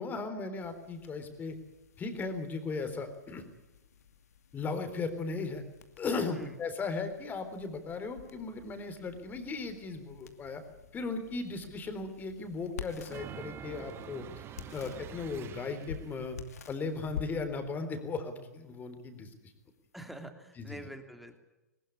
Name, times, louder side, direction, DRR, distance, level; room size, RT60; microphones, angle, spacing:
voice 1, 0.0-1.6 2.0-3.4 4.5-5.6 6.0-10.6 10.9-14.4 14.7-16.4 16.7-19.5 20.6-20.8, left 4 dB, 20° left, 9 dB, 3.8 m, -37 dB
sound 1, 0.6-20.2, left 7 dB, 65° left, 2.5 m, -50 dB
sound 2, 13.1-16.3, right 10 dB, 25° right, 1.1 m, -46 dB
voice 2, 19.9-21.4, right 1 dB, ahead, 6 dB, 3.1 m, -46 dB
21.0 x 20.5 x 8.6 m, 1.0 s
figure-of-eight pair, 105°, 9 cm